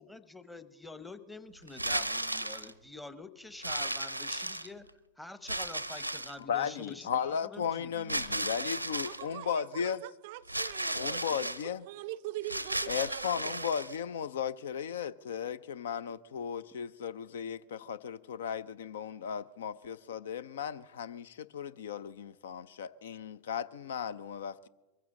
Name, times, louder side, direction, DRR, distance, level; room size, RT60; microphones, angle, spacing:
voice 1, 0.0-4.9 5.2-8.5, left 2 dB, 5° left, 0.9 m, -47 dB
sound 1, 1.7-2.7 3.6-4.9 5.5-6.4 8.1-9.2 10.5-11.6 12.4-14.0, right 1 dB, 90° right, 0.6 m, -35 dB
voice 2, 6.4-10.1 10.9-11.9 12.9-24.7, left 7 dB, 60° left, 0.4 m, -36 dB
voice 3, 9.0-11.5 11.9-13.7, right 16 dB, 50° right, 0.4 m, -43 dB
23.0 x 15.0 x 3.7 m
figure-of-eight pair, 90°, 0 cm